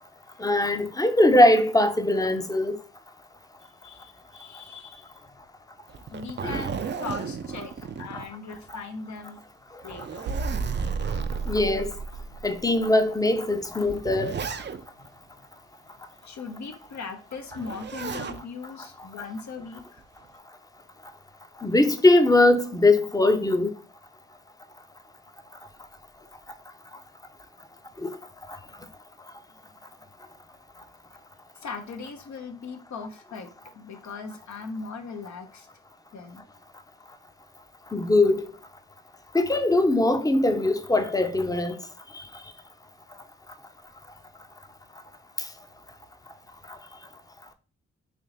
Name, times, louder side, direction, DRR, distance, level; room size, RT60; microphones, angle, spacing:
voice 1, 0.4-2.8 6.4-6.6 11.5-11.9 12.4-14.3 21.6-23.7 28.0-28.2 37.9-38.5 39.3-41.7, left 2 dB, 10° left, 0.7 m, -21 dB
voice 2, 3.6-5.1 6.1-9.4 9.8-10.2 15.0-15.1 16.2-20.0 31.6-35.7 36.1-36.5, left 4 dB, 65° left, 0.9 m, -39 dB
Zipper (clothing), 5.9-8.8 9.2-9.3 9.8-11.7 12.4-12.5 13.5-15.1 17.5-18.4 19.8-20.3, right 6 dB, 35° right, 0.5 m, -35 dB
sound 1, 10.3-13.0, right 4 dB, 85° right, 0.6 m, -32 dB
3.4 x 2.9 x 4.1 m
supercardioid pair, 45°, 31 cm